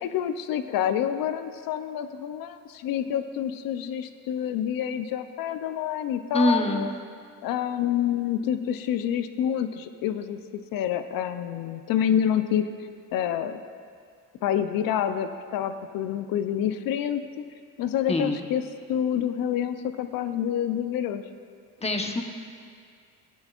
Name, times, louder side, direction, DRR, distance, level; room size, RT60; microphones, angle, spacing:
voice 1, 0.0-6.9 7.4-12.7 13.1-13.6 14.4-17.2 17.8-18.6 18.9-21.2, left 9 dB, 70° left, 10 dB, 0.7 m, -27 dB
voice 2, 6.3-6.9 18.1-18.4 21.8-22.2, left 1 dB, 15° left, 4 dB, 1.1 m, -24 dB
16.0 x 9.4 x 2.5 m, 2.2 s
supercardioid pair, 80°, 35 cm